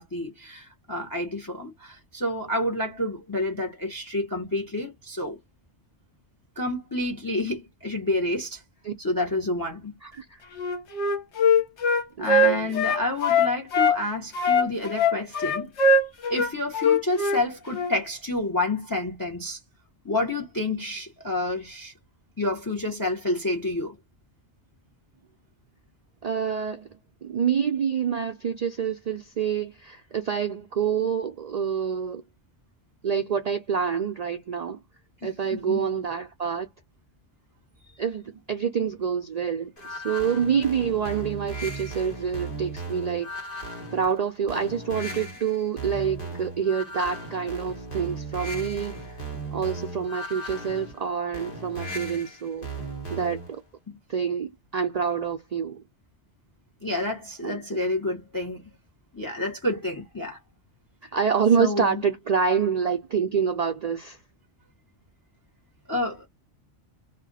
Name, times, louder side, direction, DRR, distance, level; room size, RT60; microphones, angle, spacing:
voice 1, 0.0-5.4 6.6-8.6 9.0-10.0 12.2-15.7 16.3-19.6 20.0-21.9 22.4-23.9 35.2-35.8 53.9-54.0 56.8-58.6 59.1-60.4 61.6-62.0 65.9-66.3, left 2 dB, 20° left, 0.7 m, -29 dB
voice 2, 10.0-10.4 12.2-12.7 26.2-26.9 27.2-32.2 33.0-34.8 35.2-36.7 38.0-43.3 43.9-49.2 49.5-52.7 53.1-53.6 54.1-55.8 57.4-57.8 61.0-64.2, right 7 dB, 90° right, 0.3 m, -27 dB
Wind instrument woodwind instrument, 10.6-14.0 14.3-17.4 17.7-17.9, left 3 dB, 70° left, 1.1 m, -22 dB
sound 1, 39.8-53.6, right 2 dB, 50° left, 1.2 m, -36 dB
2.4 x 2.2 x 3.8 m
omnidirectional pair, 1.2 m